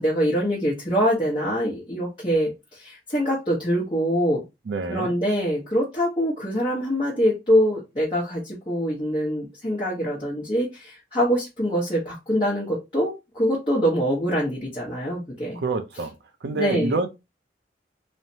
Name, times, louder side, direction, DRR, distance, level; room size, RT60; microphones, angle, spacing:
voice 1, 0.0-4.4 4.9-15.6 16.5-17.0, equal, 30° left, 0.8 m, -24 dB
voice 2, 4.7-5.2 15.5-16.2 16.4-17.1, right 3 dB, 75° right, 0.5 m, -27 dB
3.1 x 2.0 x 2.7 m
head